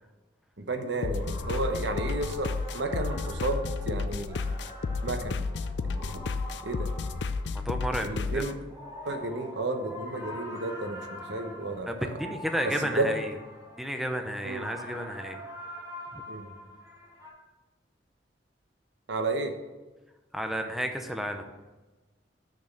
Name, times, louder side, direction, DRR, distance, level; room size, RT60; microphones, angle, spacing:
voice 1, 0.6-4.4 5.0-5.5 5.8-6.3 6.6-6.9 8.0-8.6 9.0-12.1 12.8-13.2 14.4-14.7 16.3-16.5 19.1-19.6, right 2 dB, 85° right, 5 dB, 1.0 m, -32 dB
sound 1, 1.0-8.5, left 4 dB, 70° left, 0.4 m, -32 dB
sound 2, 1.2-17.3, equal, 20° right, 2.5 m, -44 dB
voice 2, 7.5-8.1 8.3-8.4 11.9-13.2 13.8-15.4 16.1-16.2 20.3-21.4, equal, ahead, 5 dB, 0.7 m, -32 dB
6.5 x 6.2 x 7.2 m, 1.2 s
head